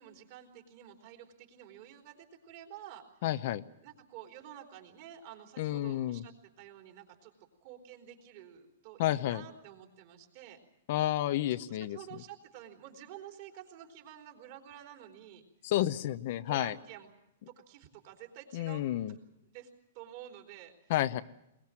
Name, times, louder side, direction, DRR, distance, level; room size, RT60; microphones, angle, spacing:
voice 1, 0.0-3.2 3.8-7.3 7.6-10.6 11.6-15.4 16.4-17.1 17.5-18.9 19.5-19.7 19.9-20.9, right 11 dB, 45° right, 3 dB, 3.9 m, -50 dB
voice 2, 3.2-3.6 5.6-6.2 9.0-9.4 10.9-12.0 15.6-16.7 18.5-19.1 20.9-21.2, left 13 dB, 50° left, 12 dB, 0.8 m, -30 dB
22.0 x 21.0 x 7.6 m, 0.83 s
hypercardioid pair, 160°, 0 cm